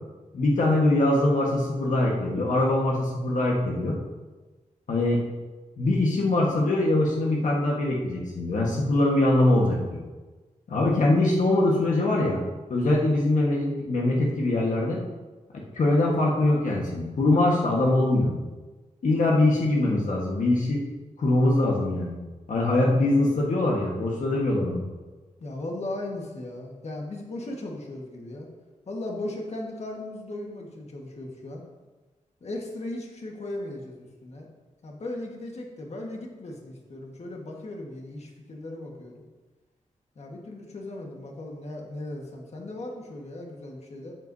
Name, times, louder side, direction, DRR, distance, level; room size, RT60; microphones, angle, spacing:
voice 1, 0.3-4.0 4.9-5.2 5.8-10.0 10.7-12.4 12.7-15.0 15.5-18.3 19.0-20.8 21.2-22.1 22.5-24.8, left 2 dB, 70° left, -2 dB, 1.4 m, -23 dB
voice 2, 25.4-28.5 28.9-31.6 32.4-34.5 34.8-39.2 40.1-44.2, left 1 dB, 55° left, 0 dB, 1.5 m, -37 dB
13.5 x 8.0 x 2.7 m, 1.3 s
wide cardioid pair, 125°, 13 cm